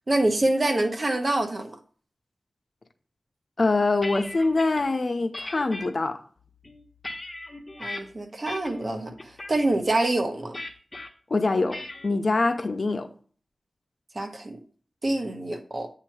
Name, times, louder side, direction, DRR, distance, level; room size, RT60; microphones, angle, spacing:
voice 1, 0.1-1.8 7.8-10.6 14.1-14.6 15.0-15.9, right 2 dB, 45° right, 1.2 m, -26 dB
voice 2, 3.6-6.2 11.3-13.1, left 3 dB, 60° left, 0.7 m, -24 dB
sound 1, 3.6-4.8 5.3-5.9 6.5-8.0 8.5-8.9 9.2-9.6 10.5-11.1 11.7-12.1, left 2 dB, 25° left, 1.3 m, -38 dB
8.6 x 3.0 x 6.0 m
wide cardioid pair, 60°, 0 cm